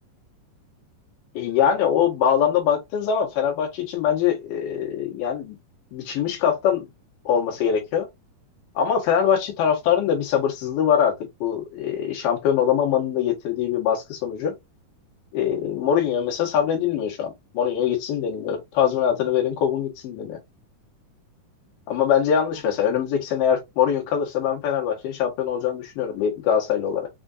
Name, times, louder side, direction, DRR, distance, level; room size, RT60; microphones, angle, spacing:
voice 1, 1.3-5.6 5.9-6.9 7.3-8.1 8.8-14.5 15.3-20.4 21.9-27.1, left 8 dB, 85° left, 2.9 m, -23 dB
5.9 x 2.4 x 2.5 m
omnidirectional pair, 3.8 m